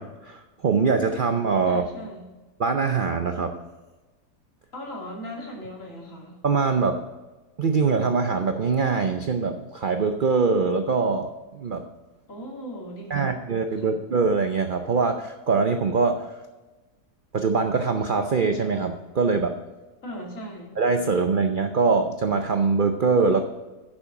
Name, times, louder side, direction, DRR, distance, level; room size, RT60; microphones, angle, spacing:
voice 1, 0.0-1.9 2.6-3.6 6.4-7.0 7.6-11.9 13.1-16.3 17.3-19.6 20.8-23.4, right 4 dB, 60° right, 6 dB, 0.5 m, -23 dB
voice 2, 1.6-2.3 4.7-6.4 12.3-13.4 13.7-14.0 20.0-20.7, equal, 50° left, -2 dB, 2.9 m, -38 dB
9.8 x 7.2 x 4.8 m, 1.2 s
omnidirectional pair, 1.7 m